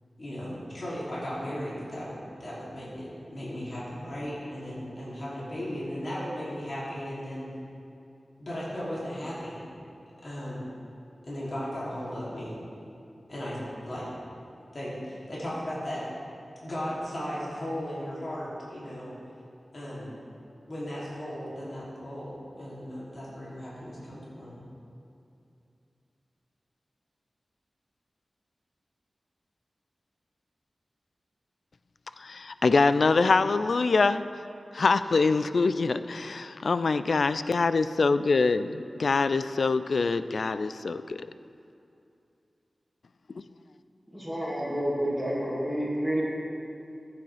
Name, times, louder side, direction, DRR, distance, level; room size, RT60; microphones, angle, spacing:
voice 1, 0.2-7.5 8.4-9.6 10.2-10.6 11.2-12.6 13.3-14.1 14.7-16.0 16.6-19.1 19.7-20.1 20.7-24.6, equal, 55° left, -8 dB, 2.8 m, -36 dB
voice 2, 32.2-34.2 34.7-41.3, left 4 dB, 75° left, 12 dB, 0.3 m, -24 dB
voice 3, 44.1-46.2, equal, 5° left, -6 dB, 2.1 m, -29 dB
14.0 x 8.6 x 3.4 m, 2.6 s
wide cardioid pair, 70°, 0 cm